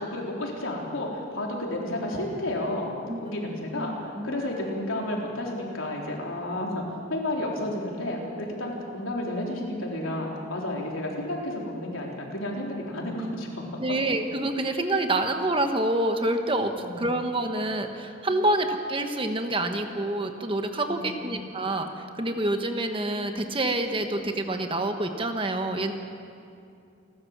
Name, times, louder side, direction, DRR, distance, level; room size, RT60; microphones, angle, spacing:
voice 1, 0.0-2.9 3.2-6.8 7.1-13.6 16.8-17.2 20.9-21.5, left 1 dB, 85° left, -1 dB, 4.0 m, -31 dB
voice 2, 3.7-4.4 13.8-25.9, right 1 dB, 25° right, 5 dB, 1.3 m, -27 dB
29.0 x 13.0 x 7.4 m, 2.5 s
head